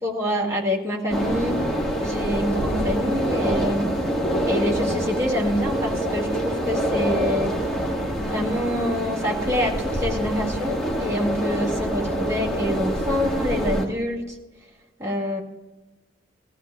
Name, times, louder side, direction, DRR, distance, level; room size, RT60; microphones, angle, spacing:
voice 1, 0.0-1.6 2.0-3.9 4.5-7.5 8.2-14.4 15.0-15.4, left 1 dB, 15° right, -3 dB, 2.1 m, -26 dB
sound 1, 1.1-13.8, right 1 dB, 5° left, 1.6 m, -26 dB
20.0 x 15.5 x 2.3 m, 1.1 s
head